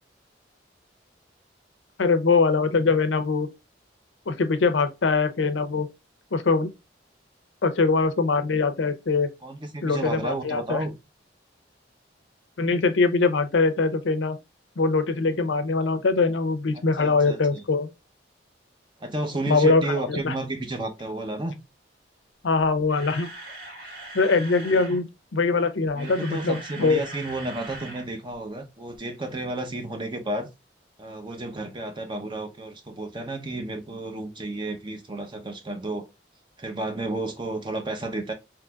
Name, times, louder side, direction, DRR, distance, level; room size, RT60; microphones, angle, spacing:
voice 1, 2.0-3.5 4.3-5.9 6.3-6.7 7.6-9.3 9.8-10.8 12.6-14.4 14.8-17.9 19.5-19.8 20.1-20.3 22.4-23.3 24.1-27.0, left 4 dB, 85° left, 0.6 m, -22 dB
voice 2, 9.4-10.9 16.7-17.6 19.0-21.6 24.7-25.0 25.9-30.5 31.0-36.1 36.6-38.3, right 2 dB, 25° right, 0.7 m, -32 dB
Camera, 22.9-25.0 25.8-28.1 28.3-28.5 28.9-29.0, right 1 dB, 50° right, 1.4 m, -41 dB
3.8 x 2.9 x 2.3 m
head